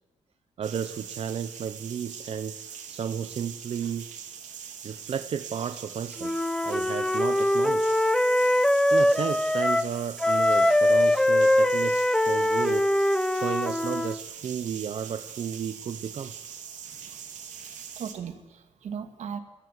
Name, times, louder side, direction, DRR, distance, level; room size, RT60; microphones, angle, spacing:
voice 1, 0.6-4.1 4.8-6.3 6.6-7.9 8.9-16.3, right 8 dB, 55° right, 9 dB, 0.9 m, -33 dB
sound 1, 0.6-18.1, right 7 dB, 90° right, 3.5 m, -42 dB
sound 2, 6.1-11.2, right 3 dB, 20° right, 6.4 m, -54 dB
Wind instrument woodwind instrument, 6.2-9.9 10.2-14.2, left 1 dB, 5° left, 0.7 m, -22 dB
voice 2, 17.6-19.4, right 7 dB, 75° right, 7 dB, 2.5 m, -38 dB
29.5 x 14.5 x 9.5 m, 1.1 s
wide cardioid pair, 170°, 12 cm